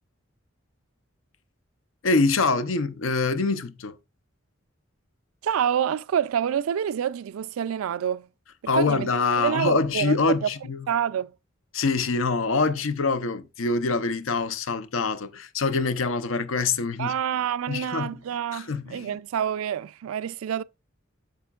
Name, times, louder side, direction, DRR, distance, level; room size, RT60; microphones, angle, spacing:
voice 1, 2.0-4.0 8.7-10.8 11.7-17.1 17.7-18.2 18.5-19.1, left 4 dB, 80° left, 0.7 m, -25 dB
voice 2, 5.4-8.3 8.7-10.1 10.4-10.5 10.9-11.3 17.0-20.6, right 9 dB, 90° right, 0.3 m, -27 dB
8.6 x 6.1 x 2.4 m
head